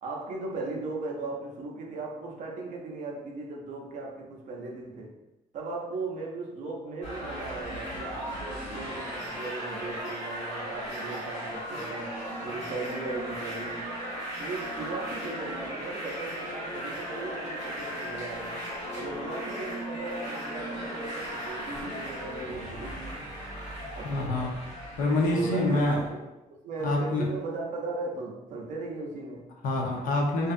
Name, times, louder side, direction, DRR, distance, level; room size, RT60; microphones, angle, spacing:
voice 1, 0.0-5.1 5.5-13.9 14.4-18.6 18.9-23.1 24.0-24.4 25.3-29.5, right 3 dB, 55° right, -1 dB, 0.5 m, -37 dB
sound 1, 7.0-26.1, equal, 45° left, 1.4 m, -37 dB
voice 2, 24.0-24.5 25.0-26.0 26.8-27.2 29.6-30.5, left 2 dB, 60° left, 0 dB, 0.5 m, -26 dB
2.5 x 2.3 x 2.5 m, 0.98 s
cardioid pair, 165°, 15 cm